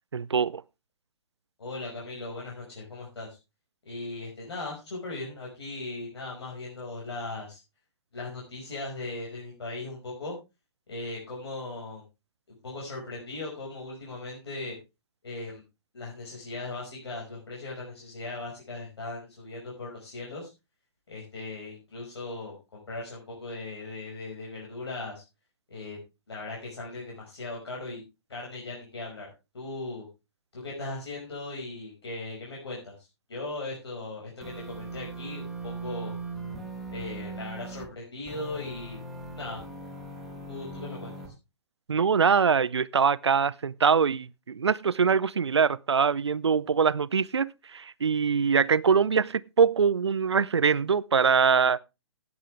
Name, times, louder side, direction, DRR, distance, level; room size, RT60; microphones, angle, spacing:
voice 1, 0.1-0.6 41.9-51.8, right 6 dB, 70° right, 0.6 m, -23 dB
voice 2, 1.6-3.4 3.9-7.6 8.1-10.3 10.9-12.0 12.5-14.7 15.2-15.6 15.9-20.5 21.1-25.2 25.7-26.0 26.3-28.0 28.3-29.3 29.5-30.1 30.5-36.1 36.9-39.0 39.3-39.6 40.5-41.3, left 2 dB, 65° left, 5.4 m, -38 dB
sound 1, 34.4-37.9 38.3-41.3, right 3 dB, ahead, 3.1 m, -39 dB
17.5 x 8.1 x 3.3 m
figure-of-eight pair, 120°, 14 cm